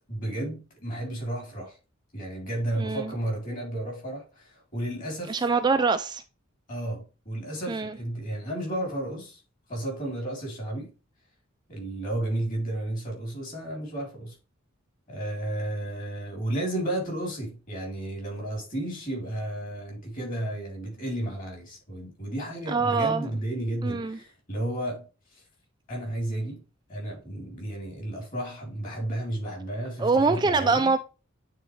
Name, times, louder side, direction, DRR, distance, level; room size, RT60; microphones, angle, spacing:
voice 1, 0.1-1.8 2.1-5.4 6.7-9.4 9.7-10.9 11.7-14.4 15.1-25.1 25.3-25.4 25.9-26.6 26.9-30.9, right 1 dB, 40° left, 3.6 m, -32 dB
voice 2, 2.8-3.1 5.3-6.2 7.7-7.9 22.7-23.3 23.8-24.2 30.0-31.0, right 4 dB, 20° right, 0.3 m, -24 dB
9.1 x 4.1 x 3.3 m
head